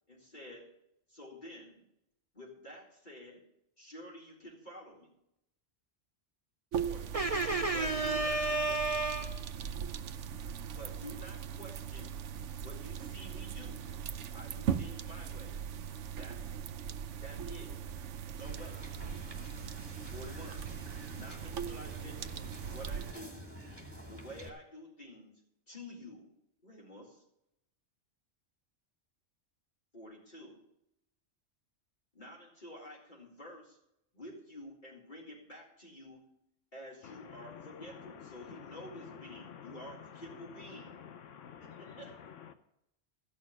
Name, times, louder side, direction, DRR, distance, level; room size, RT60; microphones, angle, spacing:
voice 1, 0.1-0.7 1.1-1.8 2.3-3.4 3.8-5.1 6.7-7.2 7.7-8.8 10.1-10.2 10.7-12.2 12.6-13.9 14.3-15.6 16.2-16.5 17.2-17.9 18.4-18.9 20.1-20.6 21.1-22.5 22.7-23.5 24.1-25.4 25.7-26.3 26.6-27.2 29.9-30.6 32.1-33.8 34.1-36.2 36.7-41.0 41.6-42.2, equal, 40° left, 4.1 m, -50 dB
sound 1, 6.7-23.1, right 8 dB, 80° right, 1.0 m, -40 dB
voice 2, 7.1-9.6, right 2 dB, 50° right, 0.4 m, -31 dB
Wind / Boat Water vehicle, 18.4-24.5, equal, 10° right, 2.4 m, -49 dB
voice 3, 37.0-42.5, left 8 dB, 85° left, 1.1 m, -50 dB
15.0 x 6.3 x 8.5 m
omnidirectional pair, 1.2 m